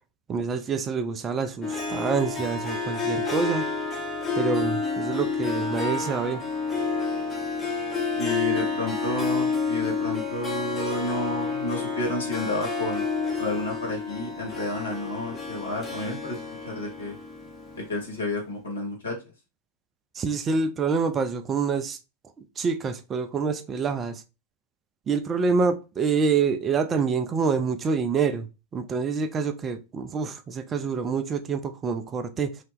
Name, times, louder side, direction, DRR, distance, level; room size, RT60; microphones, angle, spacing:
voice 1, 0.3-3.6 4.3-6.4 20.1-22.0 22.6-24.2 25.1-28.5 28.7-32.6, right 5 dB, 25° right, 0.4 m, -26 dB
Harp, 1.6-18.1, left 4 dB, 15° left, 0.8 m, -29 dB
voice 2, 8.1-13.0 13.4-17.1 17.7-19.2, left 2 dB, 70° left, 1.4 m, -31 dB
3.1 x 2.8 x 3.3 m
figure-of-eight pair, 90°, 0 cm